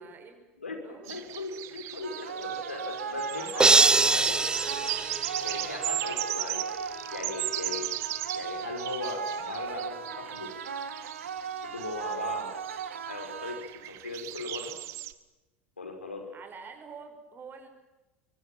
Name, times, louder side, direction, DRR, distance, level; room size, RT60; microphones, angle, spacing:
voice 1, 0.0-0.4 0.8-1.1 16.3-17.7, right 5 dB, 30° right, 6 dB, 6.1 m, -46 dB
voice 2, 1.0-4.4 5.1-7.9 8.3-10.5 11.7-12.5 13.1-14.8 15.8-16.3, left 3 dB, 85° left, 4 dB, 5.7 m, -39 dB
sound 1, 1.1-15.1, right 15 dB, 50° right, 1.5 m, -37 dB
sound 2, 2.0-14.0, right 6 dB, 75° right, 1.9 m, -37 dB
sound 3, 3.6-5.9, right 3 dB, 10° right, 0.8 m, -23 dB
25.5 x 24.5 x 7.5 m, 1.1 s
figure-of-eight pair, 75°, 7 cm